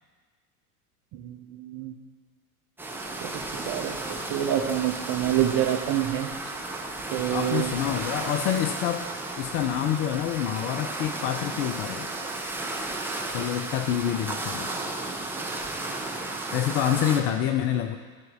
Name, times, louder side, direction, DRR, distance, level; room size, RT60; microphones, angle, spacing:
voice 1, 1.1-1.9 3.2-4.0 4.3-6.3 7.1-7.7, right 11 dB, 35° right, 4 dB, 0.9 m, -27 dB
sound 1, 2.8-17.2, right 2 dB, 5° right, 0.6 m, -34 dB
voice 2, 7.3-9.1 9.4-12.1 13.3-14.7 16.5-18.0, left 10 dB, 30° left, 6 dB, 0.4 m, -27 dB
13.0 x 4.4 x 3.6 m, 1.5 s
figure-of-eight pair, 80°, 46 cm